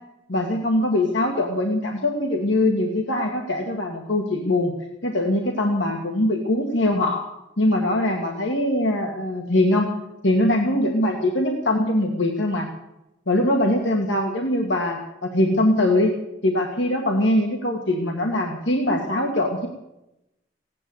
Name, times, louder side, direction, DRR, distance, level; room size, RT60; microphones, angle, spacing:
voice 1, 0.3-4.7 5.0-7.2 7.6-9.9 10.2-12.7 13.3-16.2 16.4-19.7, left 1 dB, 80° left, 2 dB, 1.9 m, -22 dB
17.0 x 9.8 x 8.0 m, 0.90 s
head